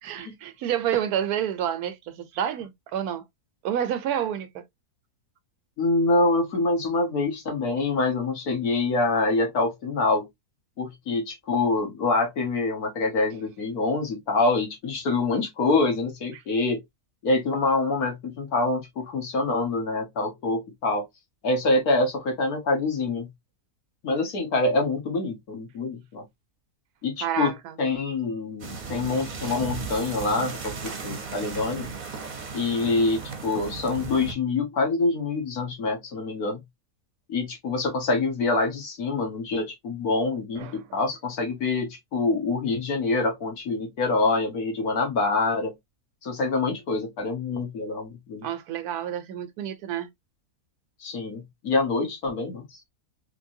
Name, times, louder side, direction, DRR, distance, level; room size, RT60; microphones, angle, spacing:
voice 1, 0.0-3.2 3.6-4.6 16.3-16.4 27.2-27.7 40.6-41.0 48.4-50.1 52.0-52.1, right 10 dB, 85° right, 1.2 m, -29 dB
voice 2, 5.8-10.3 10.8-16.8 17.2-21.0 21.4-23.3 24.0-26.2 27.0-31.9 32.5-36.6 37.3-45.7 46.2-48.5 51.0-52.9, left 3 dB, 75° left, 1.8 m, -25 dB
sound 1, 28.6-34.3, right 5 dB, 40° right, 0.8 m, -36 dB
3.8 x 3.2 x 2.6 m
omnidirectional pair, 1.6 m